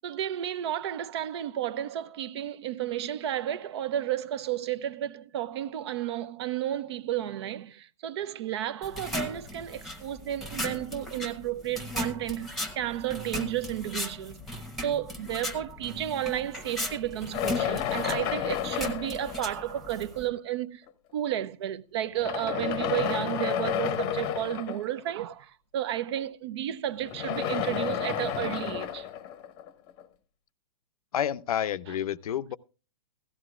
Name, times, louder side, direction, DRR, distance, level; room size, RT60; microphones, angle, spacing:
voice 1, 0.0-14.5 14.8-20.8 21.1-29.1 31.9-32.0, right 11 dB, 45° right, 0.6 m, -32 dB
sound 1, 8.8-20.3, left 1 dB, ahead, 1.1 m, -37 dB
sound 2, 17.3-20.0 20.9-21.0 22.1-25.1 27.0-30.0, left 10 dB, 25° left, 0.8 m, -31 dB
voice 2, 31.1-32.6, left 10 dB, 65° left, 0.6 m, -29 dB
17.0 x 14.0 x 2.4 m
hypercardioid pair, 150°, 20 cm